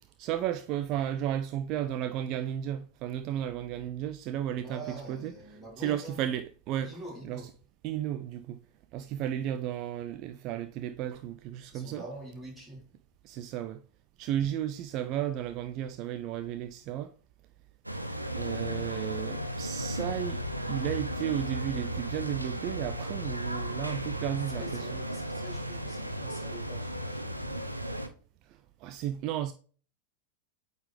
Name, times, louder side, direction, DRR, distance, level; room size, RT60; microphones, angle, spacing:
voice 1, 0.2-5.3 5.8-6.9 7.3-7.4 7.8-8.6 8.9-12.0 13.2-13.8 14.2-17.1 18.3-24.9 28.4-29.5, right 11 dB, 40° right, 0.4 m, -34 dB
voice 2, 4.6-6.2 6.8-7.5 11.7-12.8 24.5-27.7, right 1 dB, ahead, 3.4 m, -45 dB
sound 1, 17.8-28.1, equal, 85° right, 0.7 m, -35 dB
8.6 x 4.1 x 3.3 m
figure-of-eight pair, 90°, 0 cm